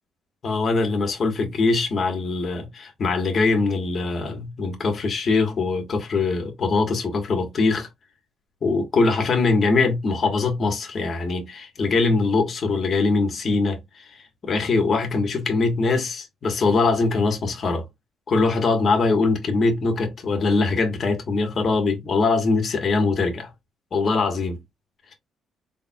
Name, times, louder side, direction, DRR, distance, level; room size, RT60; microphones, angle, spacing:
voice 1, 0.4-7.9 8.6-17.8 18.3-23.5 23.9-24.6, left 3 dB, 50° left, 1.4 m, -22 dB
4.3 x 3.3 x 2.3 m
cardioid pair, 90°, 0 cm